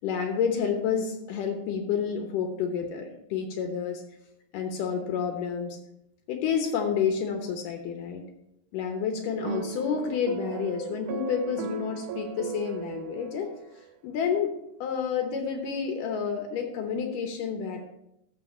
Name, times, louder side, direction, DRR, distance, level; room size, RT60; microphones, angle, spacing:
voice 1, 0.0-4.0 4.5-5.8 6.3-8.2 8.7-13.5 14.0-14.5 14.8-17.8, left 7 dB, 75° left, 4 dB, 2.6 m, -29 dB
sound 1, 9.4-13.9, right 7 dB, 80° right, 1.9 m, -37 dB
14.0 x 5.4 x 4.3 m, 0.81 s
omnidirectional pair, 3.9 m